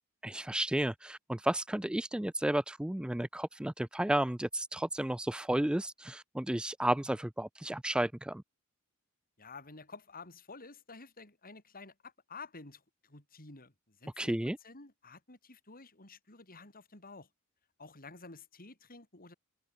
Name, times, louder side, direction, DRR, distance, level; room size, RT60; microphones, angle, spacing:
voice 1, 0.2-8.4 14.2-14.6, right 1 dB, 5° right, 0.3 m, -32 dB
voice 2, 9.4-14.3 14.6-17.3 17.8-19.3, left 4 dB, 40° left, 5.6 m, -51 dB
head